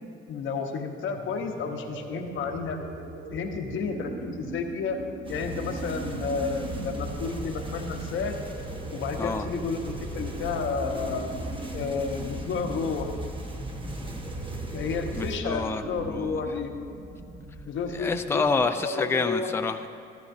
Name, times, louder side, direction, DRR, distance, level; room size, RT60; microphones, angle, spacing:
voice 1, 0.3-2.8 3.3-5.0 5.3-8.4 8.9-11.3 11.7-13.1 14.7-16.7 17.6-18.4 18.8-19.5, left 5 dB, 75° left, 3 dB, 1.0 m, -31 dB
sound 1, 1.0-18.6, right 3 dB, 75° right, 1.3 m, -40 dB
sound 2, 5.2-15.4, right 1 dB, 25° right, 1.2 m, -37 dB
voice 2, 15.1-16.4 17.9-19.9, left 4 dB, 10° left, 6 dB, 0.4 m, -28 dB
14.0 x 13.0 x 2.7 m, 2.6 s
cardioid pair, 90°, 20 cm